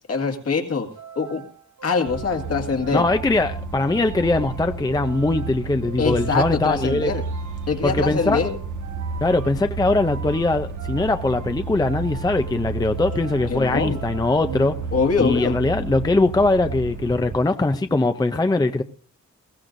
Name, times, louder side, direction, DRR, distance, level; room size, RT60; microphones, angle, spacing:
voice 1, 0.1-0.9 1.2-1.4 1.8-3.1 6.0-7.2 7.7-8.5 13.5-14.0 14.9-15.6, left 5 dB, 55° left, 4 dB, 2.0 m, -23 dB
sound 1, 0.8-15.3, right 8 dB, 70° right, 1.1 m, -42 dB
sound 2, 2.1-17.4, right 3 dB, 85° right, 1.6 m, -32 dB
voice 2, 2.9-7.1 7.8-8.4 9.2-14.8 15.2-18.8, left 2 dB, 15° left, 8 dB, 0.6 m, -21 dB
21.0 x 16.0 x 2.6 m, 0.40 s
wide cardioid pair, 140°, 29 cm